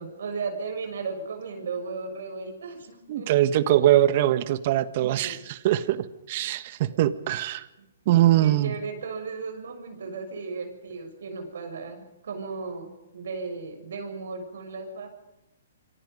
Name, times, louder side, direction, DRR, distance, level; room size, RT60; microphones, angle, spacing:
voice 1, 0.0-3.4 5.0-5.3 6.9-7.1 8.4-15.1, right 4 dB, 70° right, 5 dB, 6.5 m, -35 dB
voice 2, 3.1-7.7 8.1-8.7, right 13 dB, 45° right, 13 dB, 1.5 m, -22 dB
27.5 x 23.5 x 5.4 m, 0.97 s
hypercardioid pair, 140°, 0 cm